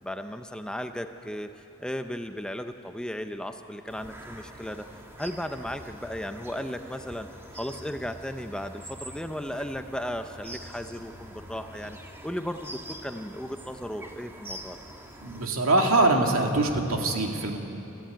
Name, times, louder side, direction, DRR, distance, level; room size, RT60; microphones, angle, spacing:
voice 1, 0.0-4.9 5.2-7.3 7.5-12.0 12.2-14.8, equal, 5° left, 7 dB, 0.6 m, -35 dB
sound 1, 3.9-15.5, right 1 dB, 10° right, 1.5 m, -45 dB
voice 2, 15.2-17.6, right 2 dB, 85° right, 2 dB, 2.3 m, -23 dB
26.0 x 14.5 x 9.1 m, 2.9 s
head